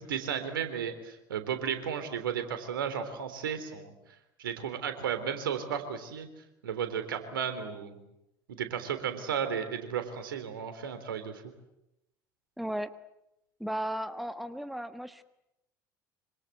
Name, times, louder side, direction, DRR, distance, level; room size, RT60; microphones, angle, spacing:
voice 1, 0.0-3.9 4.4-6.3 6.6-8.0 8.5-11.4, right 8 dB, 75° right, 9 dB, 3.5 m, -34 dB
voice 2, 12.6-12.9 13.6-15.2, right 1 dB, ahead, 11 dB, 1.4 m, -35 dB
26.0 x 25.5 x 8.1 m, 0.87 s
figure-of-eight pair, 65°, 11 cm